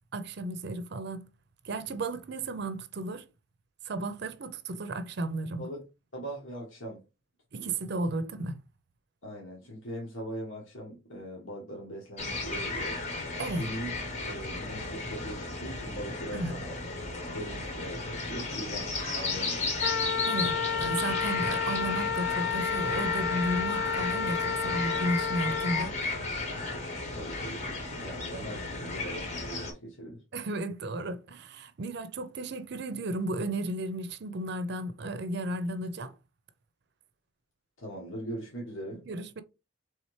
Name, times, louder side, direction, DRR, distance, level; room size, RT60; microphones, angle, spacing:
voice 1, 0.1-1.3 1.6-3.3 3.9-5.7 7.5-8.6 13.4-13.7 16.3-16.6 20.3-26.0 30.3-36.1 39.1-39.4, right 1 dB, 55° right, 0.5 m, -34 dB
voice 2, 6.1-7.0 7.6-7.7 9.2-13.0 13.5-13.9 14.2-16.7 17.2-19.8 27.1-30.2 37.8-39.0, right 1 dB, 75° left, 1.4 m, -41 dB
sound 1, 12.2-29.7, left 3 dB, 35° left, 1.0 m, -34 dB
Wind instrument woodwind instrument, 19.8-25.9, left 6 dB, 55° left, 0.3 m, -31 dB
4.3 x 3.4 x 3.1 m
head